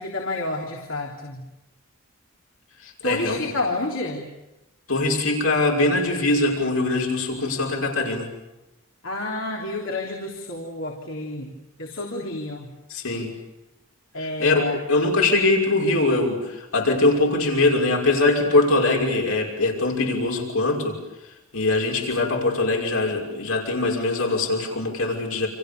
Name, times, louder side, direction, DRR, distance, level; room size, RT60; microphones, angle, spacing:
voice 1, 0.0-1.4 3.0-4.3 9.0-11.5 11.8-12.7 14.1-14.8, left 2 dB, 60° left, 0 dB, 3.6 m, -29 dB
voice 2, 2.8-3.4 4.9-8.3 12.9-13.4 14.2-25.5, left 2 dB, 80° left, 0 dB, 5.9 m, -22 dB
30.0 x 28.0 x 7.0 m, 0.95 s
head